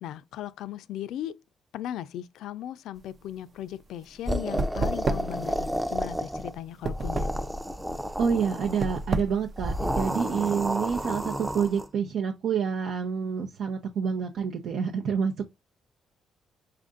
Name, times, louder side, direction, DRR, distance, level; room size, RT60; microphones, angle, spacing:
voice 1, 0.0-1.3 1.7-7.3, left 11 dB, 85° left, 0.4 m, -37 dB
sound 1, 3.0-10.5, right 2 dB, 45° right, 0.6 m, -33 dB
sound 2, 4.3-6.6 6.9-9.0 9.6-11.9, equal, 10° right, 0.5 m, -31 dB
voice 2, 8.2-15.5, right 6 dB, 75° right, 0.8 m, -28 dB
5.6 x 2.6 x 3.6 m
cardioid pair, 90°, 0 cm